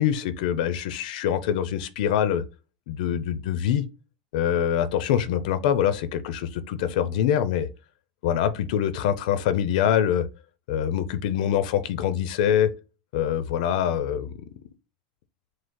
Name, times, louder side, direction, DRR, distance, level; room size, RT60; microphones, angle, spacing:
voice 1, 0.0-2.4 2.9-3.8 4.3-7.7 8.2-10.3 10.7-12.7 13.1-14.3, left 9 dB, 70° left, 0.5 m, -24 dB
5.1 x 2.0 x 3.7 m
supercardioid pair, 140°, 5 cm